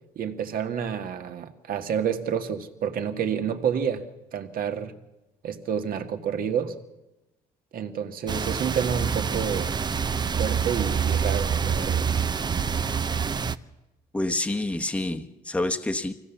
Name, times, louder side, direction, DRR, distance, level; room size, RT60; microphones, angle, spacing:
voice 1, 0.2-4.0 4.3-4.9 5.4-6.7 7.7-9.8 10.4-12.0, right 7 dB, 60° right, 1.8 m, -29 dB
sound 1, 8.3-13.6, right 6 dB, 25° right, 0.7 m, -26 dB
voice 2, 14.1-16.1, left 2 dB, 5° left, 1.1 m, -27 dB
24.5 x 16.5 x 7.2 m
cardioid pair, 110°, 17 cm